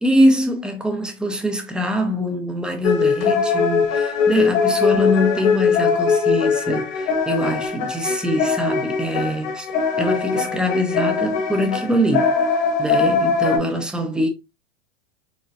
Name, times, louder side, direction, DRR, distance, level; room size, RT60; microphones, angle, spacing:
voice 1, 0.0-9.7 10.0-12.3 12.8-14.3, equal, 5° right, 0.4 m, -23 dB
sound 1, 2.8-13.6, left 5 dB, 50° left, 1.1 m, -21 dB
4.1 x 2.1 x 2.4 m
hypercardioid pair, 115°, 30 cm